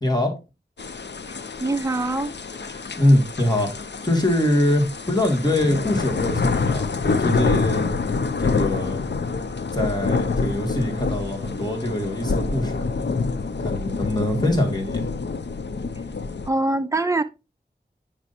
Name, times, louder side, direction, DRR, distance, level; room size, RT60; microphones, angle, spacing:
voice 1, 0.0-0.4 2.7-3.7 4.0-7.9 8.4-9.0 9.7-12.9 13.6-15.1, left 1 dB, 25° left, 2.3 m, -23 dB
sound 1, 0.8-16.5, left 4 dB, 85° left, 0.6 m, -27 dB
voice 2, 1.6-2.3 16.5-17.2, right 2 dB, 15° right, 0.6 m, -23 dB
7.4 x 6.1 x 2.7 m
wide cardioid pair, 50°, 18 cm